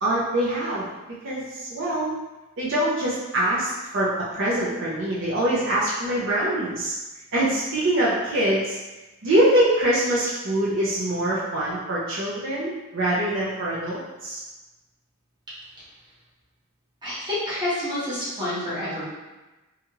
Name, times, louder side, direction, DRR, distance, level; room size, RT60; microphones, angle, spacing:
voice 1, 0.0-0.8 1.2-2.1 2.6-6.9 7.3-8.8 9.2-14.4, right 1 dB, 60° right, -8 dB, 0.7 m, -24 dB
voice 2, 17.0-19.1, left 1 dB, 20° right, -11 dB, 1.1 m, -28 dB
3.1 x 2.4 x 2.9 m, 1.1 s
head